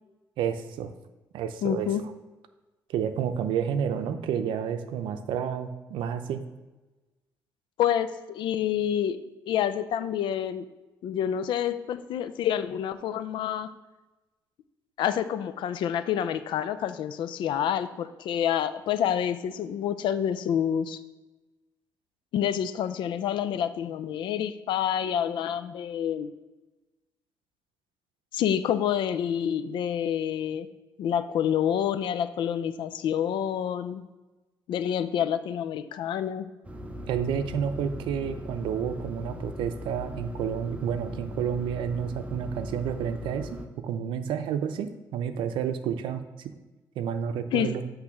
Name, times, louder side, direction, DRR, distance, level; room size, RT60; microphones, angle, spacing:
voice 1, 0.4-0.9 1.3-1.9 2.9-6.4 37.1-46.5 47.0-47.8, right 8 dB, 80° right, 9 dB, 0.6 m, -30 dB
voice 2, 1.6-2.0 7.8-9.2 9.5-10.7 11.0-13.7 15.0-21.0 22.3-26.3 28.3-30.7 31.0-34.0 34.7-36.5 47.5-47.7, left 9 dB, 70° left, 12 dB, 0.5 m, -28 dB
sound 1, 36.6-43.7, equal, 15° right, 0.8 m, -39 dB
8.2 x 3.2 x 5.9 m, 1.2 s
cardioid pair, 100°, 8 cm